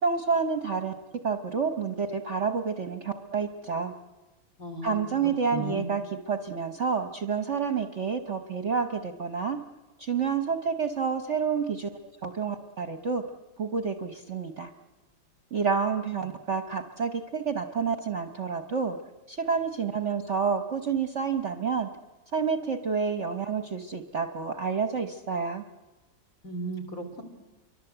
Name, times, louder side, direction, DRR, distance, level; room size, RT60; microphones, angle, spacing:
voice 1, 0.0-3.9 4.8-9.6 10.0-11.9 12.2-13.2 13.6-14.7 15.5-19.0 19.3-21.9 22.3-25.6, right 5 dB, 45° right, 8 dB, 1.1 m, -29 dB
voice 2, 4.6-5.0 5.5-5.9 26.4-27.2, right 1 dB, 45° left, 7 dB, 3.7 m, -35 dB
28.0 x 24.0 x 8.0 m, 1.2 s
omnidirectional pair, 2.0 m